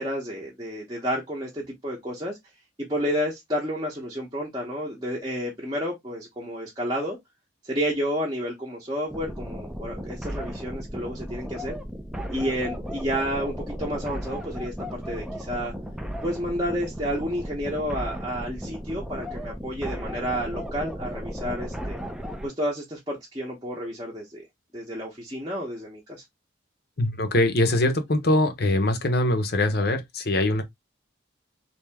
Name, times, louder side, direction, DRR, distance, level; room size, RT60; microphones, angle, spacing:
voice 1, 0.0-2.4 2.8-7.2 7.6-11.8 12.3-15.7 16.2-22.0 22.4-24.4 24.7-26.2, equal, 20° right, 0.8 m, -30 dB
sound 1, 9.1-22.5, equal, 5° right, 0.4 m, -35 dB
voice 2, 27.0-30.6, left 1 dB, 50° left, 0.7 m, -22 dB
3.4 x 2.8 x 3.3 m
head